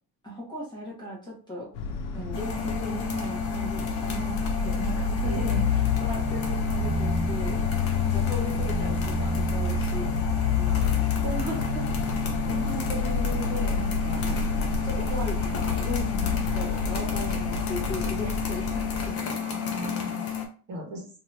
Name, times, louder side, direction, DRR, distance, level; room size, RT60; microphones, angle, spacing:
voice 1, 0.2-1.7 2.1-7.6 8.0-10.9 12.5-14.3 14.8-19.1, left 1 dB, 10° left, -5 dB, 0.8 m, -37 dB
sound 1, 1.7-19.1, left 4 dB, 85° left, 0.7 m, -28 dB
sound 2, 2.3-20.5, left 6 dB, 30° left, 0.5 m, -32 dB
voice 2, 5.3-5.6 11.2-11.9 14.3-14.4 19.4-20.2 20.7-21.0, right 1 dB, 40° right, 1 dB, 0.9 m, -36 dB
sound 3, 12.4-17.7, left 1 dB, 20° right, 0.3 m, -45 dB
2.7 x 2.4 x 3.2 m, 0.40 s
cardioid pair, 165°, 46 cm